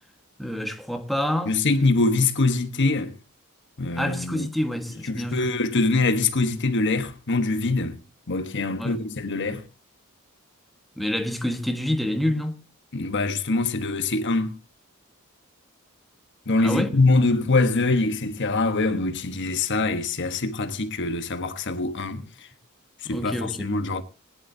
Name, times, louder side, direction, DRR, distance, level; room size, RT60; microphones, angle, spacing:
voice 1, 0.4-1.5 4.0-5.5 8.8-9.0 11.0-12.6 16.6-16.9 23.0-23.7, left 1 dB, ahead, 1.3 m, -27 dB
voice 2, 1.5-3.1 3.8-4.5 5.0-8.0 8.3-9.6 12.9-14.6 16.5-22.3 23.0-24.0, left 3 dB, 55° left, 1.3 m, -24 dB
21.0 x 11.0 x 2.8 m
head